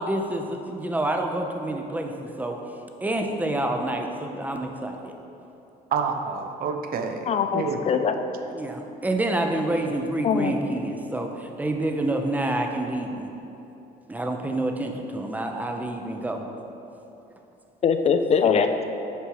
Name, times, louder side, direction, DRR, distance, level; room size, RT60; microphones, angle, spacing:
voice 1, 0.0-2.6 3.0-5.1 8.5-13.3 14.1-16.5 18.5-18.6, right 1 dB, 10° right, 3 dB, 0.6 m, -28 dB
voice 2, 5.9-8.0, right 5 dB, 60° right, 6 dB, 0.6 m, -28 dB
voice 3, 7.3-8.1 10.2-10.5 17.8-18.8, left 6 dB, 40° left, 8 dB, 0.4 m, -22 dB
6.7 x 4.6 x 4.7 m, 2.9 s
cardioid pair, 110°, 17 cm